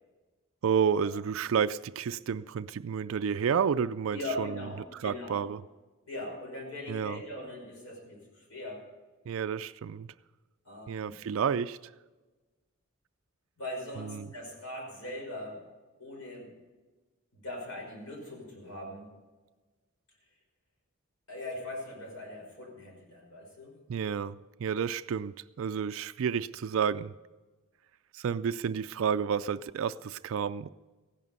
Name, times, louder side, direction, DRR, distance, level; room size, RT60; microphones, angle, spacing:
voice 1, 0.6-4.7 4.9-5.6 6.9-7.2 9.3-10.1 10.9-11.8 14.0-14.3 23.9-27.1 28.1-30.7, right 7 dB, 65° right, 0.3 m, -30 dB
voice 2, 4.1-5.4 6.1-8.8 10.6-11.1 13.6-15.6 16.0-16.5 17.3-19.1 21.3-23.8, left 1 dB, 70° left, 5.4 m, -40 dB
15.5 x 11.0 x 5.5 m
head